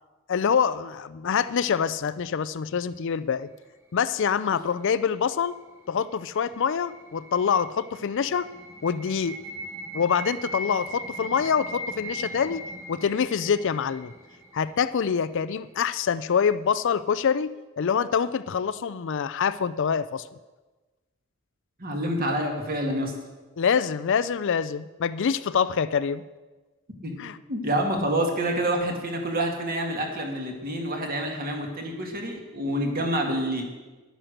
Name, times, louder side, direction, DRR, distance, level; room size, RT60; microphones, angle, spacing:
voice 1, 0.3-3.5 3.9-5.5 5.9-8.5 8.8-9.4 9.9-14.1 14.5-20.3 23.6-26.2 27.2-27.4, left 7 dB, 55° left, 15 dB, 0.4 m, -25 dB
sound 1, 6.1-15.1, right 1 dB, 15° right, 1.8 m, -39 dB
voice 2, 21.8-23.1 27.0-33.7, right 1 dB, 40° right, 2 dB, 2.1 m, -28 dB
10.5 x 10.0 x 6.5 m, 1.2 s
head